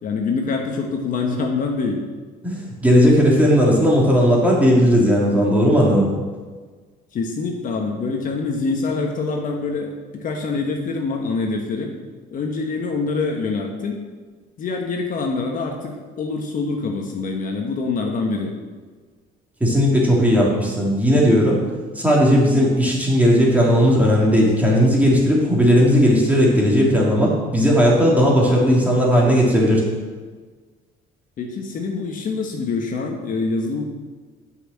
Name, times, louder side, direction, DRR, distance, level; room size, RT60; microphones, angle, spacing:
voice 1, 0.0-2.1 7.1-12.0 12.3-14.0 14.6-18.5 31.4-33.8, left 4 dB, 50° left, 2 dB, 1.3 m, -25 dB
voice 2, 2.4-6.1 19.6-21.6 21.9-29.8, equal, 10° right, -4 dB, 2.9 m, -16 dB
8.1 x 5.9 x 7.3 m, 1.4 s
cardioid pair, 110°, 17 cm